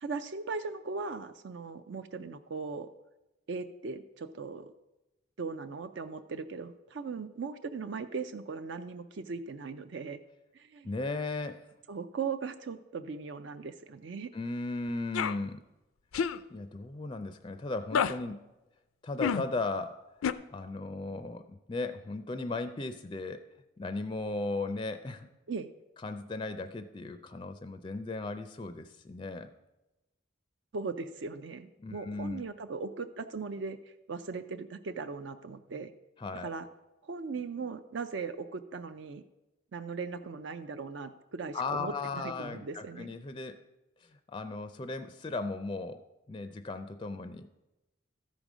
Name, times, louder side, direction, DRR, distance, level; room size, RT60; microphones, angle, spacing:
voice 1, 0.0-2.9 3.5-4.7 5.4-10.2 10.5-10.9 11.9-14.3 25.5-25.7 30.7-35.9 36.4-36.7 37.0-39.2 39.7-43.1, right 4 dB, 60° right, 9 dB, 0.4 m, -38 dB
voice 2, 10.8-11.6 14.3-15.6 16.5-18.4 19.0-20.0 20.5-23.4 23.8-25.3 26.0-29.5 31.8-32.4 36.2-36.5 41.5-43.6 44.0-47.5, left 3 dB, 25° left, 10 dB, 0.4 m, -36 dB
sound 1, 15.1-15.4 16.1-16.4 17.9-18.1 19.2-19.4 20.2-20.3, left 7 dB, 90° left, 0.4 m, -28 dB
13.0 x 5.2 x 6.1 m, 1.0 s
head